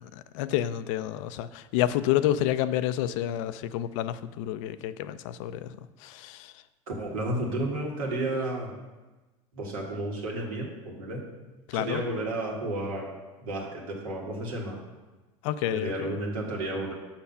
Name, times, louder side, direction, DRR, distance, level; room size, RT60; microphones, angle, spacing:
voice 1, 0.0-6.6 11.7-12.0 15.4-16.1, left 12 dB, 65° left, 13 dB, 0.4 m, -29 dB
voice 2, 6.9-8.7 9.5-11.2 11.7-13.1 13.4-14.8 15.7-16.9, right 1 dB, 80° right, -2 dB, 2.0 m, -32 dB
6.2 x 5.9 x 5.6 m, 1.2 s
hypercardioid pair, 80°, 18 cm